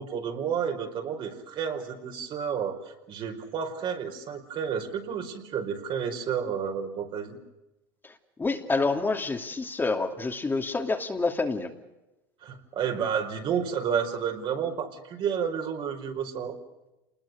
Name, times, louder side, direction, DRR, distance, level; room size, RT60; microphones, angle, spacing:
voice 1, 0.0-7.4 12.4-16.6, right 7 dB, 50° right, 4 dB, 4.9 m, -31 dB
voice 2, 8.4-11.7, left 3 dB, 20° left, 4 dB, 2.8 m, -27 dB
28.5 x 21.0 x 6.6 m, 0.98 s
supercardioid pair, 95°, 11 cm